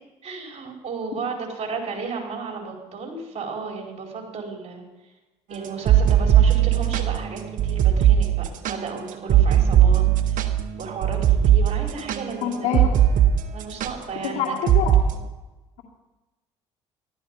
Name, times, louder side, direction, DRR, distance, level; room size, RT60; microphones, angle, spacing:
voice 1, 0.2-4.8 5.5-10.5 10.8-12.8 13.5-14.5, right 4 dB, 45° right, 1 dB, 4.8 m, -34 dB
sound 1, 5.6-13.3 13.6-13.9 14.7-15.0, right 10 dB, 65° right, 1.2 m, -18 dB
voice 2, 12.4-12.9 14.2-14.9, left 7 dB, 75° left, -3 dB, 2.4 m, -25 dB
14.5 x 12.5 x 5.6 m, 1.1 s
hypercardioid pair, 60°, 15 cm